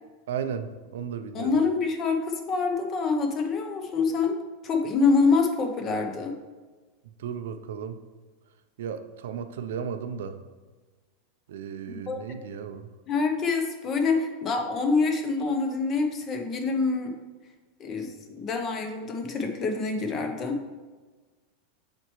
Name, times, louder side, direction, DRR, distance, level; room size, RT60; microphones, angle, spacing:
voice 1, 0.3-1.6 7.2-8.0 8.8-10.4 11.5-12.9, right 7 dB, 80° right, 9 dB, 0.5 m, -34 dB
voice 2, 1.3-4.4 4.6-6.3 11.9-12.2 13.1-17.1 17.8-20.6, left 4 dB, 25° left, 5 dB, 0.6 m, -26 dB
7.3 x 4.4 x 3.1 m, 1.3 s
supercardioid pair, 165°, 0 cm